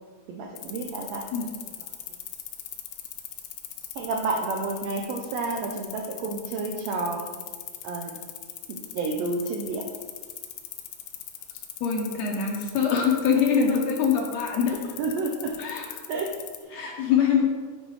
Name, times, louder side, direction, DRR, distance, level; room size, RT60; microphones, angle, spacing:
voice 1, 0.3-1.5 1.8-1.9 3.9-7.3 7.8-8.2 8.7-9.9 13.4-13.8 15.0-15.5 16.1-16.3 16.6-16.9, right 3 dB, 75° right, 0 dB, 1.6 m, -30 dB
sound 1, 0.6-16.6, left 12 dB, 85° left, 2.1 m, -39 dB
voice 2, 11.8-14.8 15.6-15.8 16.7-17.4, left 7 dB, 70° left, 0 dB, 1.9 m, -23 dB
9.1 x 3.9 x 4.7 m, 1.5 s
omnidirectional pair, 3.6 m